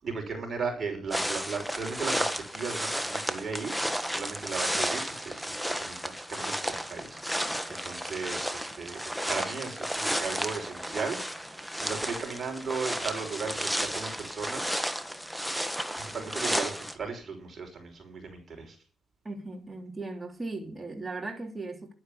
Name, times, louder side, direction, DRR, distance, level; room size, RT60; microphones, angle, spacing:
voice 1, 0.0-14.7 16.0-18.8, right 5 dB, 40° right, 5.6 m, -36 dB
sound 1, 1.1-17.0, equal, ahead, 1.4 m, -33 dB
voice 2, 19.2-21.9, right 3 dB, 20° right, 3.1 m, -37 dB
11.5 x 9.9 x 7.1 m
cardioid pair, 90°, 0 cm